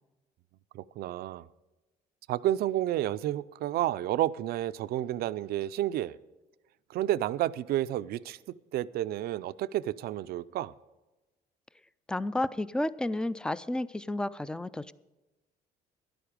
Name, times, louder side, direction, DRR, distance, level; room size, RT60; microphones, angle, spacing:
voice 1, 0.7-1.5 2.3-6.2 6.9-8.4 8.7-10.7, right 13 dB, 65° right, 15 dB, 0.4 m, -30 dB
voice 2, 12.1-14.9, left 1 dB, 5° left, 17 dB, 0.4 m, -31 dB
13.0 x 11.0 x 5.1 m, 1.1 s
cardioid pair, 110°, 17 cm